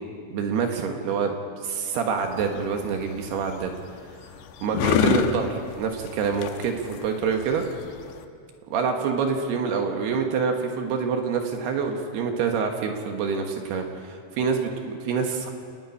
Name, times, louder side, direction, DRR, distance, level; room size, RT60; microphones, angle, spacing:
voice 1, 0.3-1.3 1.6-3.7 4.6-7.6 8.7-15.5, right 5 dB, 65° right, 4 dB, 3.0 m, -26 dB
sound 1, 2.2-8.3, left 8 dB, 75° left, 2.7 m, -29 dB
29.0 x 10.0 x 9.9 m, 2.3 s
omnidirectional pair, 5.6 m